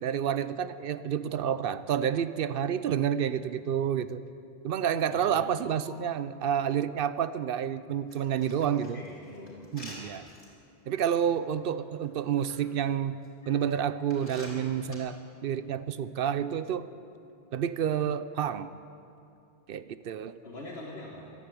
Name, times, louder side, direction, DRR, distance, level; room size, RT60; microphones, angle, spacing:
voice 1, 0.0-4.2 4.6-9.0 9.7-10.3 10.9-16.9 17.5-18.7 19.7-20.4, right 9 dB, 65° right, 14 dB, 0.7 m, -29 dB
voice 2, 5.1-6.1 8.8-9.7 13.4-13.6 20.4-21.3, left 1 dB, 75° left, -3 dB, 1.9 m, -44 dB
sound 1, 8.1-10.5 11.0-11.2 12.0-12.6 13.2-13.3 14.1-15.0, left 1 dB, 50° left, 3.4 m, -47 dB
15.0 x 11.0 x 8.3 m, 2.6 s
omnidirectional pair, 1.1 m